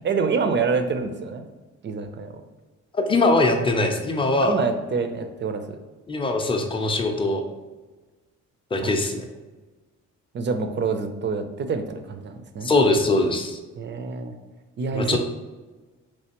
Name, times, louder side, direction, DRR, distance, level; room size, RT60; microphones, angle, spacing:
voice 1, 0.0-1.4 1.8-2.3 4.4-5.8 8.8-8.9 10.3-12.7 13.8-14.3 14.8-15.2, right 5 dB, 40° right, 7 dB, 0.4 m, -26 dB
voice 2, 2.9-4.6 6.1-7.4 8.7-9.2 12.6-13.6 14.9-15.2, left 2 dB, 15° left, 4 dB, 0.5 m, -21 dB
3.3 x 3.1 x 2.9 m, 1.3 s
cardioid pair, 90°, 30 cm